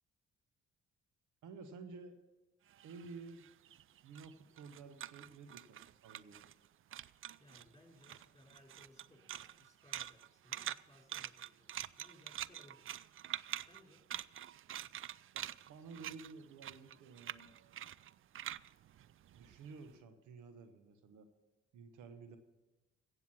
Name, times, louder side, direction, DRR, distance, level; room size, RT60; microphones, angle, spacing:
voice 1, 1.4-2.2 2.8-3.5 4.0-6.5 15.3-17.9 19.3-21.3 21.7-22.4, right 4 dB, 75° right, 9 dB, 1.1 m, -53 dB
sound 1, 2.7-6.7 6.9-7.7 8.0-19.8, right 11 dB, 45° right, 0.4 m, -46 dB
voice 2, 7.4-13.0 13.6-14.1, left 1 dB, 10° left, -1 dB, 5.1 m, -64 dB
15.5 x 8.1 x 6.0 m, 1.1 s
supercardioid pair, 50°, 30 cm